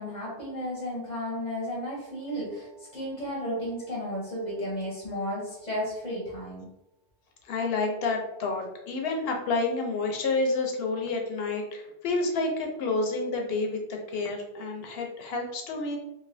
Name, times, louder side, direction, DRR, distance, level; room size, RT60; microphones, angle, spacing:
voice 1, 0.0-6.7, equal, 40° left, -5 dB, 0.8 m, -33 dB
voice 2, 7.4-16.0, left 3 dB, 65° left, 2 dB, 0.8 m, -29 dB
3.1 x 2.4 x 2.6 m, 0.89 s
omnidirectional pair, 1.1 m